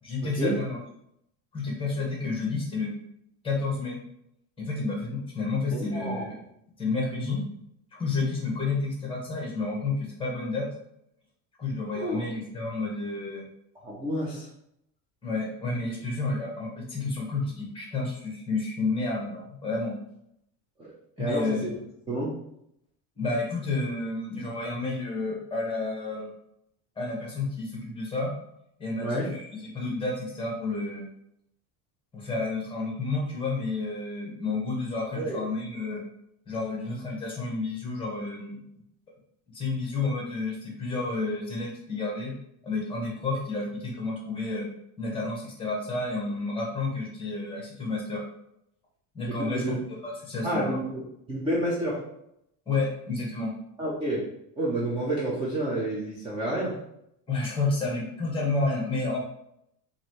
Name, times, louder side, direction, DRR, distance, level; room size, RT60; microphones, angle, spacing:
voice 1, 0.0-0.8 1.5-2.9 3.4-4.0 4.6-6.4 6.8-7.4 7.9-10.7 11.6-13.4 15.2-20.0 21.2-21.7 23.2-26.3 27.0-28.4 28.8-31.1 32.1-36.0 36.5-38.6 39.5-42.3 42.6-44.7 45.0-48.2 49.1-49.6 49.9-50.8 52.7-53.5 57.3-59.2, left 3 dB, 10° left, -2 dB, 0.9 m, -30 dB
voice 2, 5.7-6.3 11.9-12.2 13.8-14.5 21.2-21.7 22.1-22.4 29.0-29.3 35.1-35.4 49.3-49.8 50.4-51.0 51.3-52.0 53.8-54.2 54.6-56.8, right 1 dB, 15° right, -6 dB, 0.4 m, -29 dB
3.0 x 2.6 x 4.3 m, 0.77 s
cardioid pair, 165°, 43 cm